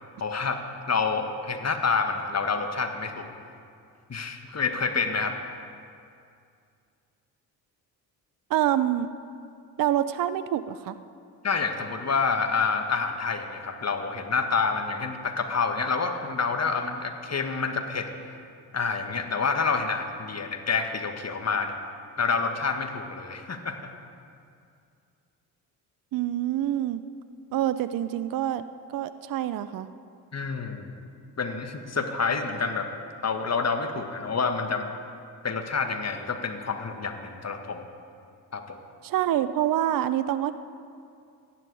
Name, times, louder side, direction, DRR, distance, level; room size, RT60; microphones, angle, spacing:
voice 1, 0.2-0.6 0.9-3.3 4.1-5.4 11.4-18.1 18.7-21.8 22.2-23.9 30.3-30.9 31.4-32.9 33.2-34.9 35.4-37.8 38.5-38.8, left 5 dB, 30° left, 6 dB, 1.7 m, -28 dB
voice 2, 8.5-9.1 9.8-11.0 26.1-27.0 27.5-28.7 28.9-29.9 39.0-40.5, right 12 dB, 45° right, 14 dB, 0.6 m, -26 dB
18.5 x 12.5 x 4.9 m, 2.4 s
figure-of-eight pair, 40°, 49 cm